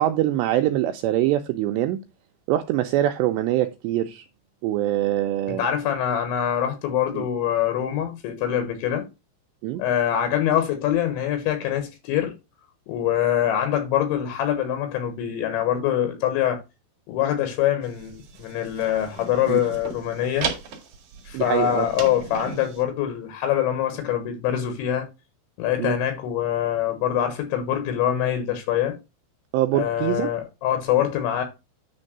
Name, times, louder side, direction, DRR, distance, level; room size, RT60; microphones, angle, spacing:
voice 1, 0.0-2.0 2.5-4.2 4.6-5.6 7.1-7.3 9.6-9.8 19.5-19.6 21.3-21.9 25.8-25.9 29.5-30.3, right 13 dB, 85° right, 2.5 m, -23 dB
voice 2, 5.5-9.1 9.8-12.3 12.9-16.6 17.1-20.5 21.3-25.1 25.6-29.0 29.7-31.4, left 10 dB, 75° left, 3.5 m, -24 dB
sound 1, 17.8-22.8, right 6 dB, 55° right, 2.7 m, -36 dB
10.0 x 3.5 x 6.5 m
omnidirectional pair, 5.6 m